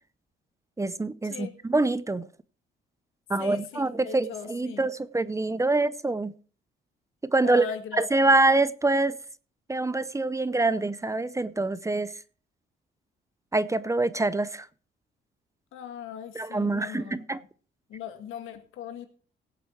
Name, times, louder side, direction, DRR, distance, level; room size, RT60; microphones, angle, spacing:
voice 1, 0.8-2.3 3.3-6.3 7.2-7.7 8.0-9.2 9.7-12.1 13.5-14.7 16.3-17.4, right 2 dB, 15° right, 0.6 m, -25 dB
voice 2, 3.4-4.9 7.4-8.3 15.7-17.5 17.9-19.1, left 9 dB, 90° left, 1.8 m, -39 dB
17.0 x 7.8 x 4.5 m
cardioid pair, 90°, 20 cm